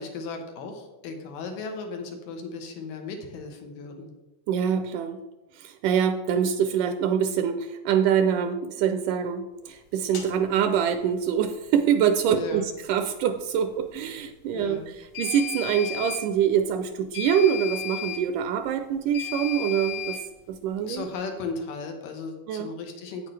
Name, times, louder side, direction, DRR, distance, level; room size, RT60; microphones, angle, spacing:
voice 1, 0.0-4.1 12.3-12.7 14.5-14.9 20.8-23.3, left 4 dB, 90° left, 4 dB, 2.8 m, -36 dB
voice 2, 4.5-5.2 5.5-20.2 20.5-21.0 22.5-22.7, right 8 dB, 80° right, 8 dB, 1.9 m, -25 dB
sound 1, 10.1-10.3 15.1-16.2 17.1-18.2 19.1-20.2, left 9 dB, 70° left, 1.0 m, -34 dB
8.9 x 8.4 x 3.2 m, 1.0 s
omnidirectional pair, 3.8 m